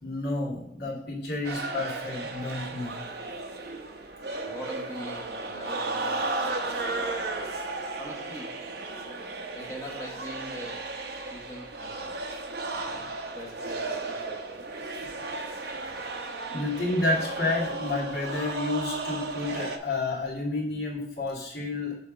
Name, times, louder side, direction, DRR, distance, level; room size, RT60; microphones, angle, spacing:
voice 1, 0.0-3.0 16.5-22.0, left 2 dB, 65° left, -6 dB, 2.4 m, -30 dB
sound 1, 1.4-19.8, right 3 dB, 60° right, 0.8 m, -34 dB
voice 2, 4.4-7.5 8.0-8.6 9.5-10.9 11.2-12.2 12.9-14.7, equal, 15° left, -4 dB, 1.1 m, -43 dB
6.7 x 3.6 x 5.3 m, 0.80 s
head